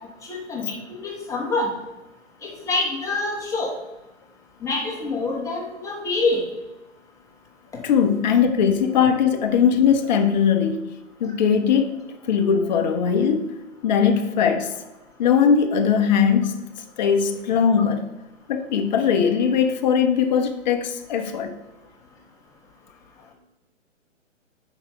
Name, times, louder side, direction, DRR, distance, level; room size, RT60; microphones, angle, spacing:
voice 1, 0.3-1.7 2.4-3.7 4.6-6.4, left 3 dB, 10° left, 1.2 m, -26 dB
voice 2, 7.8-10.9 11.2-11.9 12.2-13.5 13.8-14.8 15.2-16.6 17.0-18.1 18.5-21.6, left 7 dB, 35° left, 0.8 m, -20 dB
5.8 x 5.0 x 5.6 m
figure-of-eight pair, 130°, 38 cm